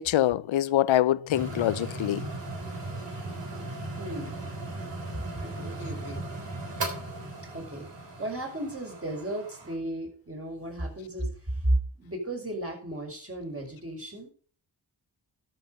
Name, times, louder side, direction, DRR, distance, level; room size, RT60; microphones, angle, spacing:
voice 1, 0.0-2.2, left 13 dB, 85° left, 0.6 m, -24 dB
sound 1, 1.3-9.7, right 2 dB, 65° right, 3.5 m, -37 dB
voice 2, 4.0-4.4 5.4-6.3 7.5-7.9 8.2-14.3, right 1 dB, 30° right, 5.4 m, -33 dB
13.0 x 6.0 x 5.3 m
cardioid pair, 40°, 46 cm